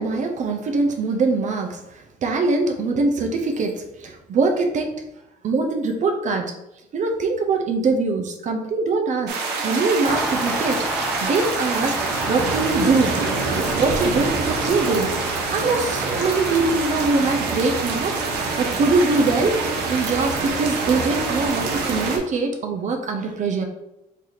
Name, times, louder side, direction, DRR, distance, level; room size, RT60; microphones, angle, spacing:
voice 1, 0.0-4.9 5.4-6.5 6.9-9.3 9.6-13.2 13.8-15.1 15.5-19.6 19.9-23.7, right 3 dB, 45° right, 4 dB, 0.7 m, -23 dB
sound 1, 9.3-22.2, right 4 dB, 85° right, 1.0 m, -25 dB
Car passing by, 10.0-20.0 20.3-20.4, equal, ahead, 0.5 m, -33 dB
4.8 x 2.8 x 3.9 m, 0.90 s
cardioid pair, 110°, 17 cm